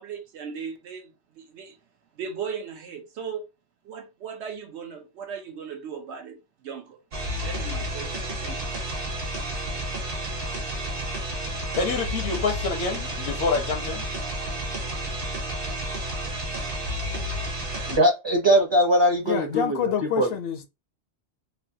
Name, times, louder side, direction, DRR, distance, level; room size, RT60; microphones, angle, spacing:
voice 1, 0.0-1.8 2.1-3.5 3.8-7.0 7.4-8.7, right 6 dB, 90° right, 1.0 m, -37 dB
sound 1, 7.1-18.0, equal, 60° right, 1.0 m, -31 dB
voice 2, 11.8-14.0, left 4 dB, 85° left, 1.2 m, -27 dB
voice 3, 17.9-20.3, equal, 30° right, 0.5 m, -21 dB
voice 4, 19.3-20.7, left 7 dB, 65° left, 0.7 m, -27 dB
3.3 x 2.2 x 2.6 m
omnidirectional pair, 1.1 m